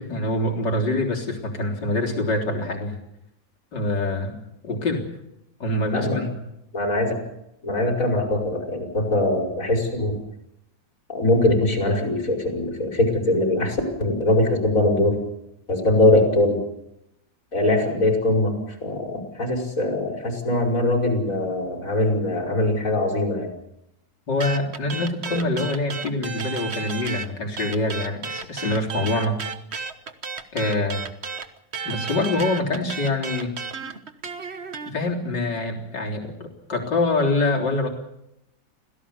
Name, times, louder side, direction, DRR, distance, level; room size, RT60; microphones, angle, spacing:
voice 1, 0.0-3.0 3.7-4.4 4.6-5.0 5.6-6.4 24.3-29.4 30.5-31.1 31.8-33.6 34.8-37.9, left 2 dB, 65° left, 0 dB, 4.3 m, -25 dB
voice 2, 6.7-7.2 7.6-10.2 11.1-15.2 15.7-16.6 17.5-23.5, left 1 dB, 45° left, 1 dB, 5.7 m, -22 dB
sound 1, 24.4-27.3 27.6-34.9, right 5 dB, 40° right, 1.4 m, -33 dB
26.5 x 17.0 x 7.2 m, 0.84 s
omnidirectional pair, 2.0 m